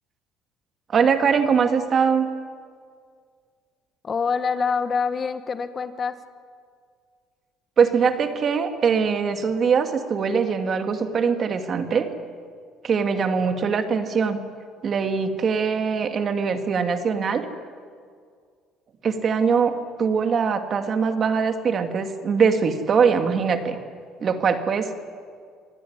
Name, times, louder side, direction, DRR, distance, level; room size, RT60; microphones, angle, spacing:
voice 1, 0.9-2.3 7.8-12.1 12.8-14.4 14.8-17.5 19.0-23.8 24.2-24.9, right 6 dB, 40° right, 6 dB, 2.4 m, -22 dB
voice 2, 4.0-6.2, left 5 dB, 35° left, 10 dB, 1.3 m, -25 dB
26.0 x 18.5 x 9.8 m, 2.1 s
cardioid pair, 110°, 0 cm